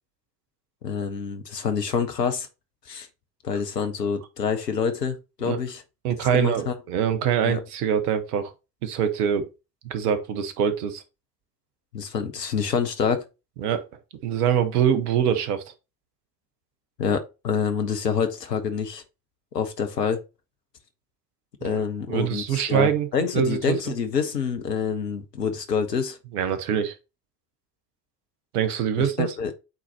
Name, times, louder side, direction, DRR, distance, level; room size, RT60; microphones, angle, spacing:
voice 1, 0.8-2.5 2.9-3.1 3.4-5.8 6.3-6.7 7.4-7.6 11.9-13.2 17.0-19.0 19.5-20.2 21.6-26.2 29.0-29.5, left 6 dB, 85° left, 1.1 m, -27 dB
voice 2, 6.0-8.5 8.8-9.5 9.8-11.0 13.6-13.8 14.2-15.6 21.6-23.1 23.3-23.8 26.3-26.9 28.5-29.3, right 8 dB, 70° right, 1.3 m, -24 dB
8.4 x 4.2 x 2.9 m
figure-of-eight pair, 55°, 47 cm